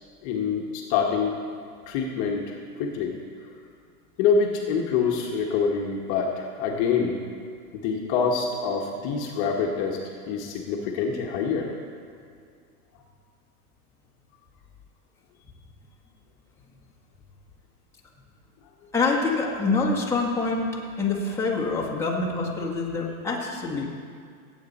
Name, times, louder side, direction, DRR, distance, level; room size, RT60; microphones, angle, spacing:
voice 1, 0.2-1.3 1.9-3.1 4.2-7.2 7.7-10.0 10.3-11.7, left 5 dB, 40° left, 0 dB, 1.3 m, -26 dB
voice 2, 18.9-23.9, left 3 dB, 5° left, -4 dB, 1.7 m, -26 dB
18.0 x 8.4 x 4.2 m, 2.2 s
hypercardioid pair, 135°, 47 cm